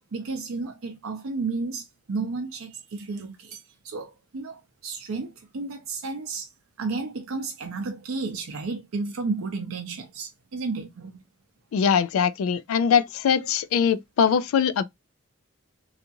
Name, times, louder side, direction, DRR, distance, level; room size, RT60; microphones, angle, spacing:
voice 1, 0.1-6.5 6.8-11.2, right 4 dB, 80° right, 0.5 m, -32 dB
voice 2, 11.7-14.8, left 7 dB, 80° left, 0.3 m, -22 dB
2.8 x 2.4 x 2.6 m
head